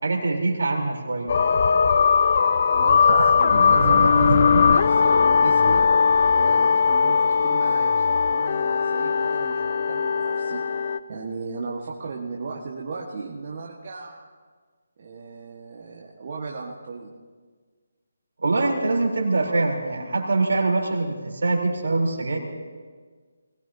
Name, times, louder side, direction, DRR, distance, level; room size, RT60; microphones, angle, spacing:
voice 1, 0.0-1.4 3.0-3.3 3.7-4.4 18.4-22.4, right 3 dB, 70° right, 0 dB, 3.7 m, -24 dB
sound 1, 1.3-11.0, left 5 dB, 45° left, 0.5 m, -19 dB
voice 2, 2.7-5.9 6.3-10.6 11.1-14.3 15.0-17.1, right 4 dB, 45° right, -3 dB, 1.6 m, -36 dB
22.0 x 18.5 x 2.8 m, 1.5 s
figure-of-eight pair, 160°, 0 cm